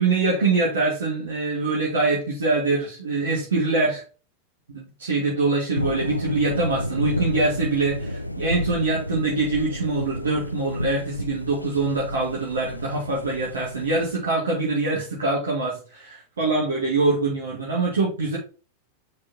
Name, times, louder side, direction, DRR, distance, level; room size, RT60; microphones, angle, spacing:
voice 1, 0.0-4.0 4.7-18.4, right 3 dB, 70° right, -5 dB, 2.1 m, -24 dB
sound 1, 5.7-14.1, equal, 90° left, 0.5 m, -31 dB
5.4 x 4.3 x 4.3 m, 0.36 s
figure-of-eight pair, 90°, 0 cm